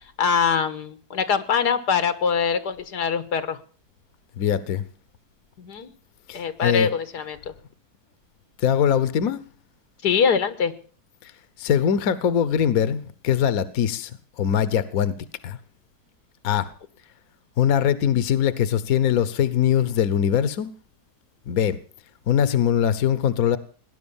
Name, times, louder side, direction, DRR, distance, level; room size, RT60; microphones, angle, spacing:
voice 1, 0.2-3.6 5.6-5.9 6.3-7.4 10.0-10.7, left 6 dB, 85° left, 12 dB, 1.9 m, -23 dB
voice 2, 4.4-4.8 6.3-6.9 8.6-9.4 11.2-11.3 11.6-14.1 14.4-15.1 15.4-15.6 16.4-16.7 17.6-20.7 21.5-21.8 22.3-23.6, left 9 dB, 65° left, 15 dB, 1.4 m, -22 dB
19.0 x 10.5 x 7.1 m, 0.42 s
omnidirectional pair, 1.7 m